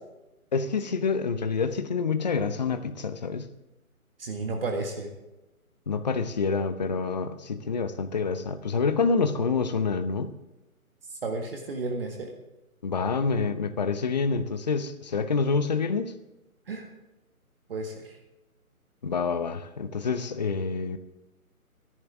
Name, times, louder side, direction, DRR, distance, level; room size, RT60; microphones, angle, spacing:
voice 1, 0.5-3.5 5.9-10.3 12.8-16.1 19.0-21.0, left 5 dB, 30° left, 9 dB, 0.7 m, -27 dB
voice 2, 4.2-5.1 11.1-12.3 16.7-16.9 17.7-18.2, right 3 dB, 40° right, 2 dB, 1.9 m, -32 dB
24.0 x 11.0 x 3.6 m, 1.0 s
figure-of-eight pair, 155°, 43 cm